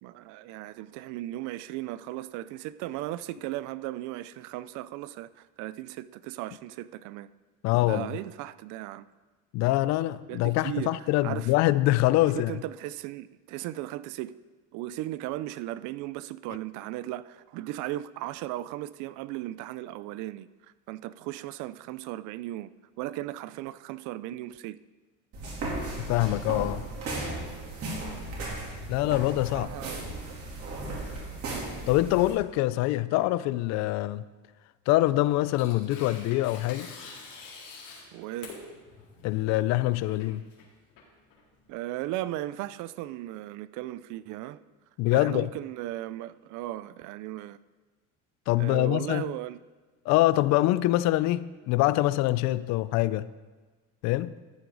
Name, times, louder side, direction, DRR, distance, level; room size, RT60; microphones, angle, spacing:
voice 1, 0.0-7.3 7.8-9.1 10.3-10.9 11.2-11.5 12.4-14.3 14.7-20.5 20.9-22.7 23.0-24.8 29.5-30.1 38.1-38.5 41.7-44.6 45.1-47.6 48.6-49.6, right 15 dB, 70° right, 0.5 m, -36 dB
voice 2, 7.6-8.1 9.5-12.6 26.0-26.8 28.9-29.7 31.9-34.2 34.9-36.9 39.2-40.4 45.0-45.5 48.5-49.3 50.1-53.3 54.0-54.3, left 16 dB, 60° left, 0.4 m, -24 dB
sound 1, 25.3-32.3, right 2 dB, 50° right, 3.0 m, -36 dB
Tearing, 34.9-41.7, left 4 dB, 85° left, 3.5 m, -47 dB
13.5 x 8.0 x 3.9 m
cardioid pair, 150°, 31 cm